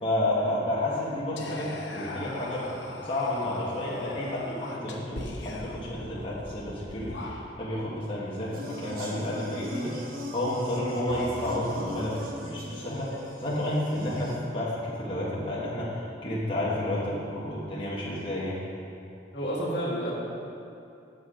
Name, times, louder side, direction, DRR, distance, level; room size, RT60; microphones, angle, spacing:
voice 1, 0.0-2.7 3.0-18.6, left 1 dB, 30° left, -8 dB, 1.3 m, -31 dB
Whispering, 1.4-7.8, left 1 dB, 80° left, 1.0 m, -41 dB
sound 1, 8.5-14.4, equal, 50° right, 1.0 m, -40 dB
voice 2, 19.3-20.1, right 1 dB, 65° left, -5 dB, 1.8 m, -30 dB
8.3 x 6.7 x 4.9 m, 2.6 s
head